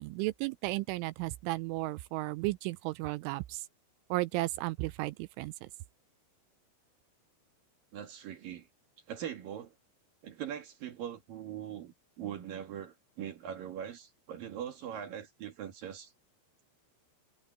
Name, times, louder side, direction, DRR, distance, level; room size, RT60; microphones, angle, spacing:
voice 1, 0.0-3.6 4.1-5.7, right 19 dB, 80° right, 3.0 m, -34 dB
voice 2, 7.9-8.7 9.1-9.7 10.2-16.1, right 9 dB, 55° right, 2.9 m, -41 dB
omnidirectional pair, 5.7 m